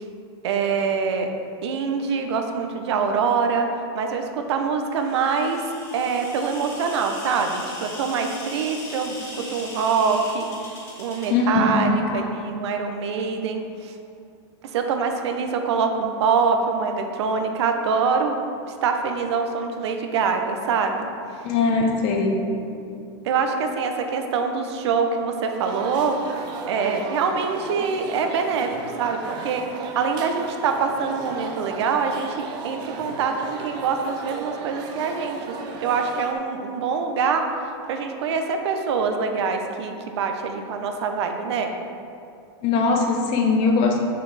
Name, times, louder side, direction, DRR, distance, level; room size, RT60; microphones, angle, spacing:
voice 1, 0.4-1.3 1.6-3.7 3.9-5.6 5.9-10.5 11.0-13.9 14.7-18.4 18.7-21.1 23.2-26.2 26.7-28.7 29.0-35.4 35.8-37.4 37.9-41.7, right 5 dB, 70° right, 5 dB, 0.8 m, -24 dB
sound 1, 4.9-11.3, left 1 dB, 20° left, 1.6 m, -39 dB
voice 2, 11.3-12.2 21.4-22.4 42.6-44.0, left 4 dB, 40° left, 2 dB, 0.8 m, -21 dB
sound 2, 25.6-36.3, right 4 dB, 30° right, 0.5 m, -35 dB
6.6 x 6.4 x 3.4 m, 2.5 s
supercardioid pair, 155°, 15 cm